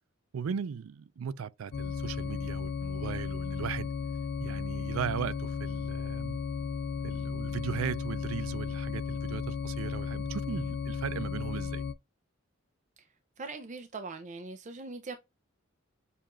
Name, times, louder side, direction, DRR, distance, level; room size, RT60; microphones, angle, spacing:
voice 1, 0.3-3.9 4.4-6.4 7.0-11.8, right 7 dB, 90° right, 0.4 m, -37 dB
sound 1, 1.7-11.9, left 5 dB, 55° left, 0.4 m, -35 dB
voice 2, 13.4-15.2, right 3 dB, 35° right, 0.5 m, -41 dB
6.8 x 2.5 x 2.9 m
head